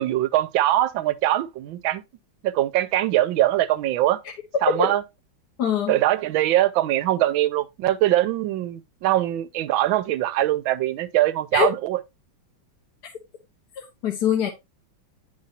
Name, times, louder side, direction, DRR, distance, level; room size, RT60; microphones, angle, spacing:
voice 1, 0.0-2.0 2.4-4.2 4.6-5.0 5.9-12.0, right 14 dB, 85° right, 1.4 m, -22 dB
voice 2, 5.6-6.0 11.5-11.7 13.0-13.1 13.8-14.5, left 8 dB, 60° left, 1.5 m, -23 dB
9.6 x 5.3 x 2.7 m
omnidirectional pair, 2.2 m